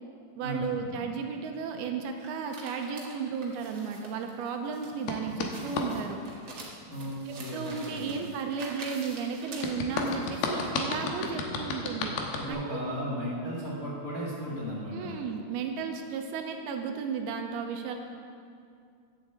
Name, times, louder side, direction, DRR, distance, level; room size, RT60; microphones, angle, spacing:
voice 1, 0.4-6.2 7.3-12.1 12.5-12.8 14.9-18.0, right 5 dB, 80° right, 4 dB, 2.7 m, -34 dB
sound 1, 2.2-10.7, right 3 dB, 45° right, 1.6 m, -46 dB
sound 2, 5.1-5.9 9.6-12.5, left 5 dB, 75° left, 2.9 m, -32 dB
voice 2, 6.9-8.1 12.3-15.1, equal, 30° left, -7 dB, 2.0 m, -35 dB
11.0 x 7.7 x 8.0 m, 2.4 s
omnidirectional pair, 4.6 m